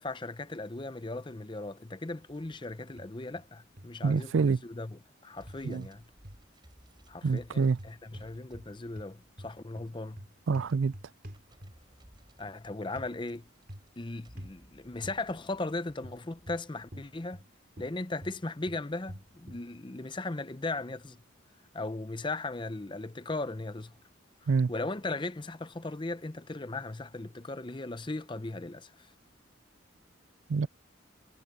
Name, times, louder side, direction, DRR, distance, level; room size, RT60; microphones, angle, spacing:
voice 1, 0.0-6.1 7.1-10.2 12.4-13.5 14.0-17.4 17.8-21.2 21.7-23.9 24.7-29.1, left 2 dB, 25° left, 0.7 m, -37 dB
sound 1, 2.2-4.6 4.9-17.9, equal, 25° right, 6.0 m, -62 dB
sound 2, 3.0-3.5 3.8-4.2 5.5-6.5 7.7-8.7 8.9-12.0 13.0-13.1 13.7-14.0 14.4-14.6 15.0-15.2 16.0-17.5 17.7-19.7, equal, 45° right, 4.0 m, -47 dB
voice 2, 4.0-4.6 5.6-5.9 7.2-7.8 10.5-10.9 24.5-24.7 30.5-30.7, right 5 dB, 75° right, 0.4 m, -26 dB
head